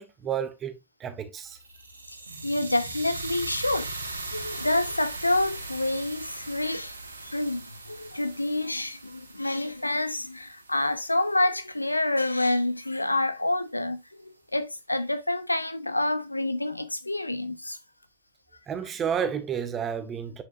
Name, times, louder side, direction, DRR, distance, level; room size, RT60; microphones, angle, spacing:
voice 1, 0.0-1.6 18.7-20.4, right 8 dB, 25° right, 1.4 m, -31 dB
sound 1, 1.4-11.6, right 2 dB, 80° right, 1.7 m, -39 dB
voice 2, 2.4-3.9 4.3-6.9 7.3-14.0 14.5-17.8, left 2 dB, 85° left, 0.8 m, -27 dB
8.3 x 7.0 x 2.5 m
figure-of-eight pair, 90°, 0 cm